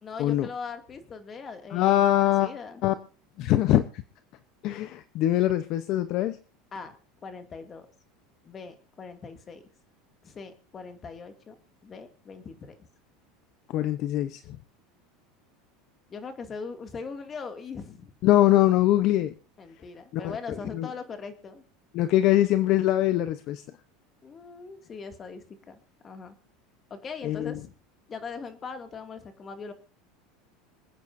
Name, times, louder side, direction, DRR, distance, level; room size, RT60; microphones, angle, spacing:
voice 1, 0.0-2.8 6.7-6.9 7.2-7.9 8.4-9.6 10.2-11.6 11.8-12.9 16.1-18.1 19.6-21.6 24.2-25.8 26.0-26.4 26.9-27.7 28.1-29.7, left 5 dB, 25° left, 7 dB, 2.4 m, -40 dB
voice 2, 1.7-2.5 2.8-2.9 3.4-3.8 4.6-6.4 13.7-14.4 18.2-19.3 20.1-20.2 20.7-20.9 21.9-23.6 27.2-27.5, left 14 dB, 50° left, 11 dB, 0.9 m, -22 dB
26.5 x 9.3 x 2.7 m, 0.36 s
supercardioid pair, 140°, 0 cm